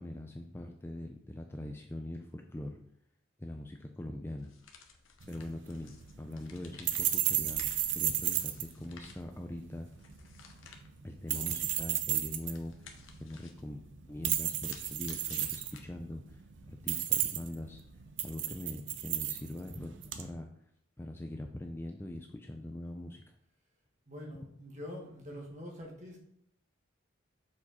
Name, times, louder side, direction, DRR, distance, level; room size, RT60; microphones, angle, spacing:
voice 1, 0.0-2.8 3.4-4.5 5.3-5.9 6.2-9.9 11.0-17.8 18.2-20.5 21.0-23.3, left 1 dB, 10° left, 4 dB, 0.4 m, -42 dB
sound 1, 4.4-16.3, left 5 dB, 75° left, 0.9 m, -56 dB
sound 2, 5.2-20.3, right 12 dB, 60° right, 0.6 m, -35 dB
voice 2, 24.1-26.2, left 1 dB, 35° right, -1 dB, 1.5 m, -45 dB
6.6 x 4.8 x 4.1 m, 0.71 s
head